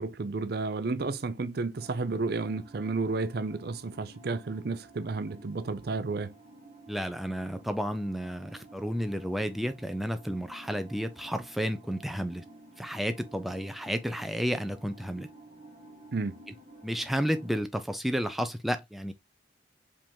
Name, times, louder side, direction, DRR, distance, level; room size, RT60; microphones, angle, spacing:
voice 1, 0.0-6.3 16.1-16.4, right 3 dB, 55° right, 0.5 m, -32 dB
sound 1, 1.8-17.6, right 1 dB, 35° right, 1.6 m, -53 dB
voice 2, 6.9-12.4 12.8-15.3 16.8-19.1, equal, ahead, 0.4 m, -32 dB
5.0 x 3.6 x 3.0 m
head